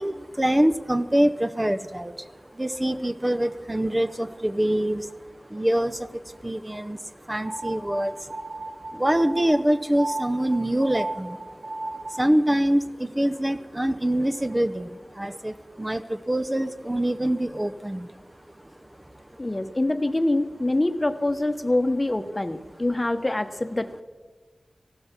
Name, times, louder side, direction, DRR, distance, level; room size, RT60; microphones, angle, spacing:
voice 1, 0.0-8.6 8.9-18.2 18.6-19.4, right 1 dB, 20° right, 10 dB, 0.7 m, -25 dB
sound 1, 7.4-12.3, right 2 dB, 80° right, 1.9 m, -35 dB
voice 2, 19.4-24.0, left 1 dB, 30° left, 9 dB, 1.0 m, -25 dB
15.0 x 12.5 x 5.9 m, 1.4 s
cardioid pair, 40°, 0 cm